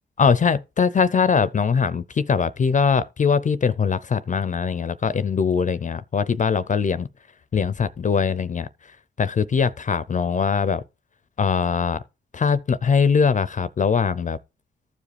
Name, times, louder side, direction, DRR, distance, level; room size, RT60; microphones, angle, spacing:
voice 1, 0.2-7.1 7.5-8.7 9.2-10.8 11.4-12.0 12.3-14.4, left 6 dB, 40° left, 0.5 m, -21 dB
14.0 x 4.8 x 3.3 m
cardioid pair, 55°, 20 cm